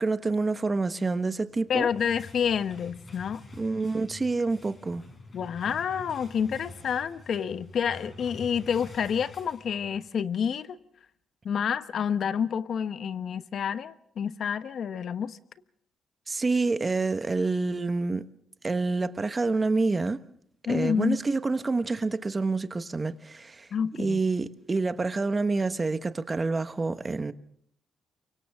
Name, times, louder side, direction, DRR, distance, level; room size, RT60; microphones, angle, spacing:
voice 1, 0.0-1.9 3.6-5.0 16.3-18.3 18.6-20.2 20.7-23.7 24.0-27.3, right 3 dB, 25° right, 1.3 m, -27 dB
sound 1, 1.5-10.2, left 3 dB, 35° left, 7.6 m, -47 dB
voice 2, 1.7-3.4 5.3-10.8 11.4-15.4 20.7-21.2 23.7-24.2, left 7 dB, 60° left, 1.1 m, -28 dB
29.0 x 24.5 x 3.7 m
cardioid pair, 90°, 0 cm